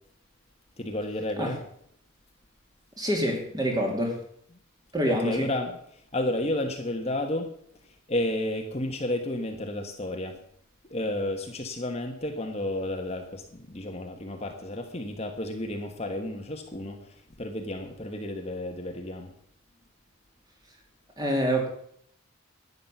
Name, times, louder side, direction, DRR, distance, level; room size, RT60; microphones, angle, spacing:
voice 1, 0.8-1.6 5.1-7.6 7.8-10.4 10.9-19.3, left 1 dB, 30° left, 3 dB, 1.3 m, -32 dB
voice 2, 3.0-4.2 4.9-5.5 21.2-21.7, equal, 20° right, 1 dB, 2.9 m, -26 dB
11.5 x 9.7 x 7.1 m, 0.67 s
head